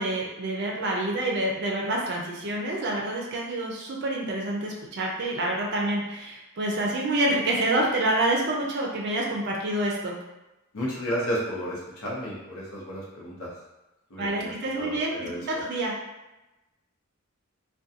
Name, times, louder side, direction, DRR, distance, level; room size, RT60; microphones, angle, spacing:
voice 1, 0.0-10.2 14.2-15.9, right 1 dB, 50° right, -1 dB, 0.4 m, -27 dB
voice 2, 10.7-13.5 14.1-15.5, equal, 80° left, -6 dB, 0.7 m, -32 dB
2.4 x 2.2 x 2.7 m, 1.0 s
head